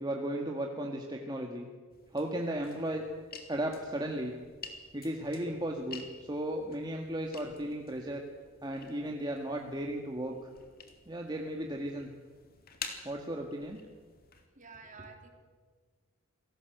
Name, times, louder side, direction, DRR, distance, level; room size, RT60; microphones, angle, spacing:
voice 1, 0.0-1.7 2.1-3.0 3.5-4.3 4.9-8.2 8.6-10.5 11.1-12.1 13.0-13.8, right 1 dB, 20° right, 1 dB, 1.8 m, -35 dB
sound 1, 1.9-14.5, left 5 dB, 45° left, 2.9 m, -50 dB
voice 2, 14.6-15.3, right 4 dB, 40° right, 3 dB, 3.8 m, -49 dB
28.0 x 18.5 x 8.0 m, 1.5 s
head